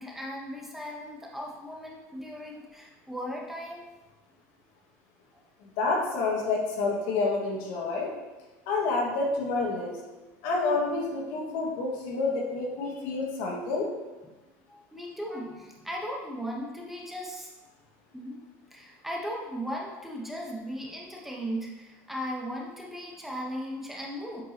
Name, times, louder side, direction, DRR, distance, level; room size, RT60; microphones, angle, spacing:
voice 1, 0.0-3.9 5.3-5.4 14.7-17.5 18.1-18.4 18.7-24.4, equal, 5° right, -2 dB, 1.1 m, -37 dB
voice 2, 5.8-8.1 8.7-9.9 10.4-13.9, left 3 dB, 75° left, -2 dB, 1.9 m, -28 dB
8.4 x 5.2 x 3.0 m, 1.2 s
cardioid pair, 125°, 6 cm